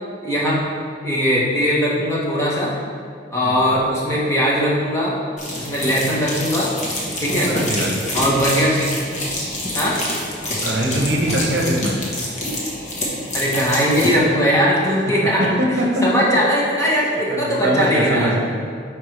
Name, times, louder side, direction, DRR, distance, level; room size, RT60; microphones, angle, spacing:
voice 1, 0.2-0.7 1.0-2.7 3.3-5.2 5.5-6.7 7.2-7.5 8.1-8.9 9.7-10.0 13.3-15.5 16.0-18.3, equal, 15° left, -6 dB, 1.2 m, -19 dB
sound 1, 5.4-14.2, left 1 dB, 40° left, 1.2 m, -26 dB
voice 2, 5.8-6.2 7.3-7.9 10.6-12.0 15.1-16.3 17.3-18.5, right 1 dB, 60° right, 0 dB, 0.9 m, -22 dB
8.6 x 4.8 x 3.3 m, 2.2 s
head